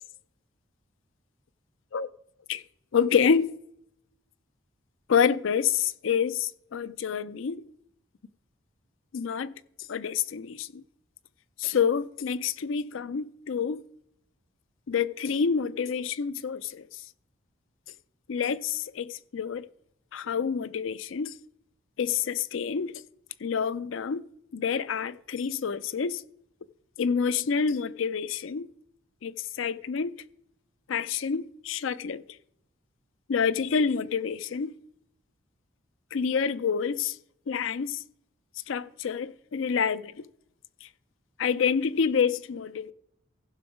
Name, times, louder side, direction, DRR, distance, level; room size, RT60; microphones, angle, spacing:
voice 1, 2.9-3.5 5.1-7.6 9.1-9.5 9.9-10.8 11.6-13.8 14.9-16.9 18.3-19.7 20.1-21.3 22.0-23.0 23.4-24.3 24.5-26.2 27.0-28.7 29.2-30.1 30.9-32.2 33.3-34.7 36.1-37.2 37.5-38.0 38.7-40.2 40.8-40.9 41.4-42.9, left 6 dB, 75° left, 0.5 m, -28 dB
15.0 x 6.0 x 4.9 m
head